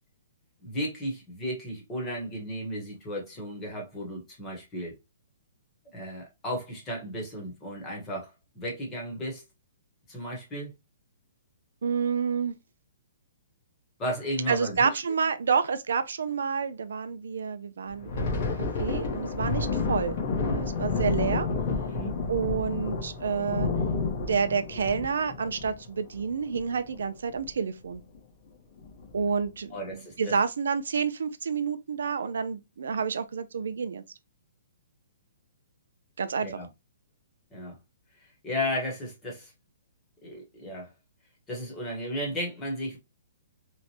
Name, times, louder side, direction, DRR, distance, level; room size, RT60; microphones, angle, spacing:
voice 1, 0.6-5.0 5.9-9.4 10.1-10.7 14.0-14.9 21.9-22.1 29.7-30.3 36.4-36.7 37.5-37.7 38.4-39.5 40.2-40.9 41.5-43.0, equal, 15° left, 1.1 m, -34 dB
voice 2, 11.8-12.5 14.5-18.5 18.8-20.1 20.4-21.5 22.3-23.7 24.3-28.0 29.1-34.0 36.2-36.6, right 6 dB, 80° right, 0.4 m, -29 dB
Thunder, 17.9-27.0 27.3-27.5 27.9-28.2 28.8-29.2, left 4 dB, 50° left, 0.9 m, -30 dB
3.0 x 2.1 x 2.8 m
hypercardioid pair, 155°, 0 cm